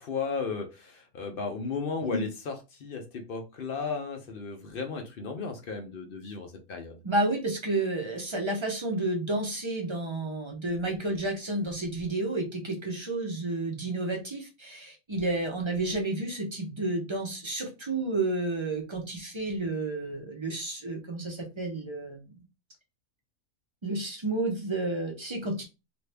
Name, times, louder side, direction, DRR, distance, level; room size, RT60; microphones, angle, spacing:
voice 1, 0.0-7.0, left 5 dB, 55° left, 0.6 m, -35 dB
voice 2, 7.0-22.4 23.8-25.6, right 2 dB, 35° right, 0.4 m, -31 dB
2.6 x 2.5 x 3.3 m
omnidirectional pair, 1.5 m